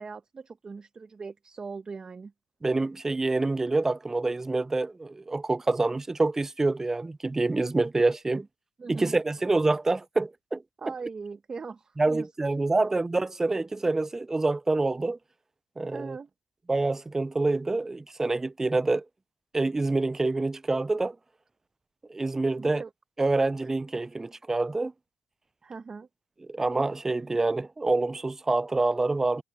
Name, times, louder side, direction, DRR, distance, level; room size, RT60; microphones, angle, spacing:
voice 1, 0.0-2.3 8.8-9.2 10.8-12.3 12.8-12.9 15.9-16.3 22.5-22.9 25.6-26.1, right 4 dB, 35° right, 1.4 m, -40 dB
voice 2, 2.6-8.5 8.9-10.6 12.0-15.2 15.8-16.2 16.7-19.0 19.5-21.2 22.1-22.8 23.2-24.9 26.5-29.4, right 2 dB, 20° right, 0.3 m, -26 dB
cardioid pair, 80°, 2 cm